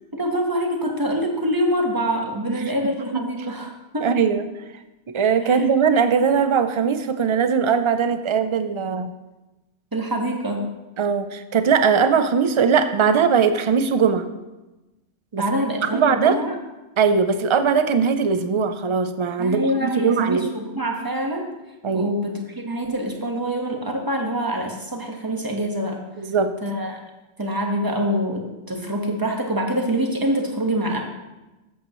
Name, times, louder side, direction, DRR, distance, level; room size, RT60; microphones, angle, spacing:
voice 1, 0.1-4.2 5.4-5.7 9.9-10.7 15.4-16.6 19.4-21.5 21.9-26.0 26.6-27.0 27.4-31.0, right 1 dB, 20° right, 1 dB, 1.3 m, -25 dB
voice 2, 4.0-4.4 5.1-9.1 11.0-14.3 15.3-15.4 15.9-16.4 17.0-20.5 21.8-22.1 26.2-26.6, right 6 dB, 40° right, 10 dB, 0.4 m, -20 dB
14.0 x 8.1 x 3.1 m, 1.1 s
omnidirectional pair, 1.2 m